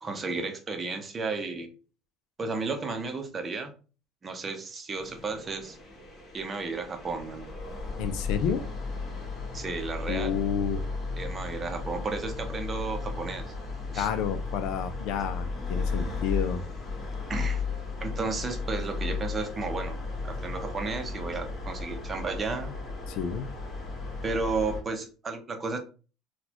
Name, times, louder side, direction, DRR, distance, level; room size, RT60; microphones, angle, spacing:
voice 1, 0.0-1.7 2.4-3.7 4.2-5.8 6.3-7.5 9.5-10.4 11.2-13.5 13.9-14.1 17.3-17.6 18.0-20.0 20.2-22.8 24.2-25.8, right 3 dB, 25° right, 6 dB, 0.7 m, -33 dB
sound 1, 5.0-24.8, left 4 dB, 30° left, 1.5 m, -35 dB
voice 2, 8.0-8.6 10.1-10.8 13.9-16.6 23.1-23.5, left 7 dB, 70° left, 8 dB, 0.4 m, -30 dB
3.9 x 2.3 x 2.9 m, 0.36 s
cardioid pair, 120°, 0 cm